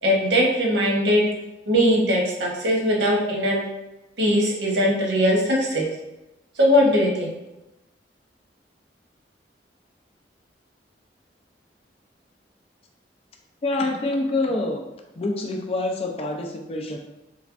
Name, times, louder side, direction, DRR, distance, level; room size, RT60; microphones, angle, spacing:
voice 1, 0.0-1.2 1.7-3.6 4.2-5.8 6.6-7.3, equal, 80° right, -2 dB, 0.9 m, -20 dB
voice 2, 13.6-14.8 15.2-17.0, left 2 dB, 35° left, 2 dB, 0.4 m, -26 dB
3.3 x 3.1 x 2.5 m, 0.96 s
head